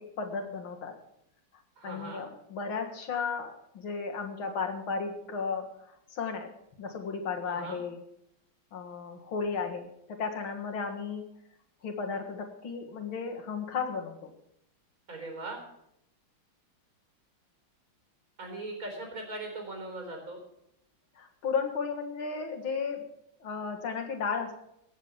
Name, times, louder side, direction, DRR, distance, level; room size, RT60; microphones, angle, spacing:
voice 1, 0.2-0.9 1.8-6.5 6.8-8.0 8.7-11.2 11.8-14.3 21.2-23.0 23.4-24.5, left 5 dB, 85° left, 4 dB, 2.6 m, -34 dB
voice 2, 1.8-2.3 7.5-7.8 15.1-15.6 18.4-20.4, right 2 dB, 45° right, 2 dB, 4.4 m, -39 dB
17.0 x 7.3 x 7.2 m, 0.76 s
omnidirectional pair, 2.2 m